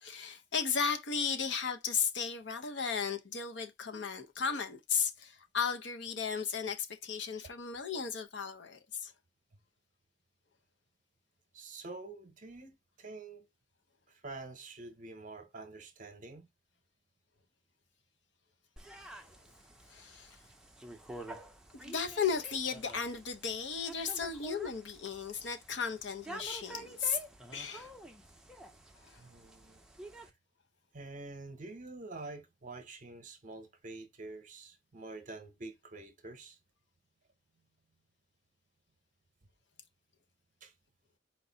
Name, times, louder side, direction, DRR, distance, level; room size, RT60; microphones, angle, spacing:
voice 1, 0.0-9.1 19.9-20.4 21.7-27.2 27.5-27.9 29.0-29.2, left 6 dB, 70° left, 0.7 m, -35 dB
voice 2, 11.5-13.4 14.1-16.5 29.2-29.8 30.2-30.3 30.9-36.6 40.6-40.7, right 3 dB, 45° right, 0.8 m, -47 dB
sound 1, 18.8-30.3, right 1 dB, 5° right, 0.6 m, -49 dB
4.5 x 2.6 x 3.9 m
head